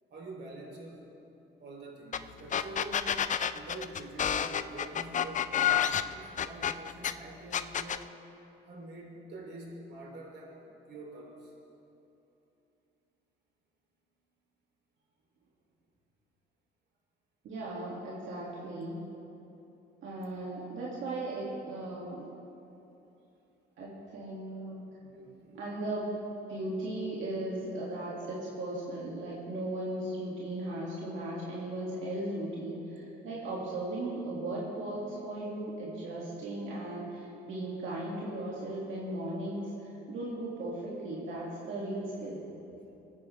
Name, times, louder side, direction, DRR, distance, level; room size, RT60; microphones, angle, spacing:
voice 1, 0.1-1.3 1.6-3.2 3.5-8.1 8.7-11.5 25.0-25.6, right 2 dB, 60° right, -1 dB, 2.9 m, -46 dB
sound 1, 2.1-2.2 2.5-7.1 7.5-8.0, left 9 dB, 40° left, 0.4 m, -29 dB
voice 2, 17.4-19.0 20.0-22.2 23.8-24.9 25.5-26.1 26.5-42.4, right 1 dB, 80° right, -6 dB, 2.2 m, -37 dB
21.0 x 9.6 x 3.3 m, 2.9 s
cardioid pair, 90°, 20 cm